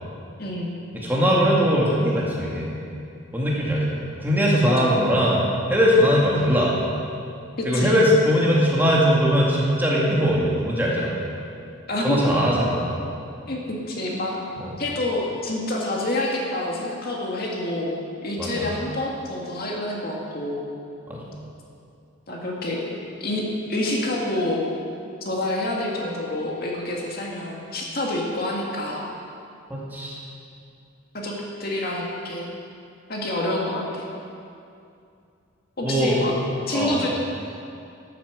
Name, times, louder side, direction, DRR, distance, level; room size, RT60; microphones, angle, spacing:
voice 1, 0.4-0.7 4.6-4.9 7.6-8.0 11.9-12.2 13.5-14.4 14.8-17.9 18.2-20.6 22.3-22.8 23.2-23.4 23.7-24.6 25.2-29.0 31.1-31.3 31.6-32.5 33.1-34.1 35.8-36.3 36.7-37.1, left 1 dB, 45° left, -2 dB, 2.1 m, -27 dB
voice 2, 0.9-2.7 3.3-6.7 7.6-11.2 12.0-12.9 14.6-14.7 18.4-18.7 21.1-21.2 29.7-30.2 35.8-36.4 36.7-37.0, equal, 10° right, -5 dB, 2.3 m, -21 dB
12.5 x 9.0 x 8.1 m, 2.5 s
head